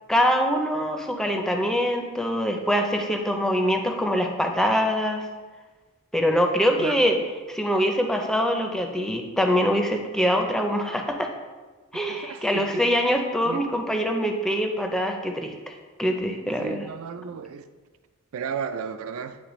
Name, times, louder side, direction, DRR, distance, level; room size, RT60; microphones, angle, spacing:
voice 1, 0.1-5.2 6.1-7.2 7.5-11.3 11.9-17.0, equal, ahead, 3 dB, 0.4 m, -24 dB
voice 2, 12.1-13.1 13.5-13.6 16.6-17.6 18.3-19.4, right 6 dB, 70° right, 11 dB, 0.4 m, -34 dB
9.4 x 3.2 x 3.0 m, 1.3 s
head